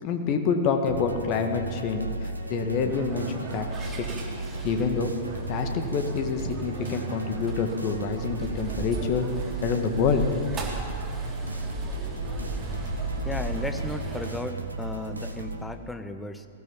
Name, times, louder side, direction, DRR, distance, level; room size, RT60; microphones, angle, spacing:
voice 1, 0.0-4.0 4.6-5.1 5.5-9.3 9.6-10.2, left 5 dB, 40° left, 5 dB, 2.1 m, -27 dB
sound 1, 0.9-15.6, right 2 dB, 85° right, 1.5 m, -35 dB
sound 2, 2.9-14.3, right 4 dB, 25° right, 3.7 m, -37 dB
voice 2, 13.2-16.5, left 2 dB, 5° left, 8 dB, 1.3 m, -35 dB
21.5 x 16.5 x 7.4 m, 2.3 s
figure-of-eight pair, 105°, 0 cm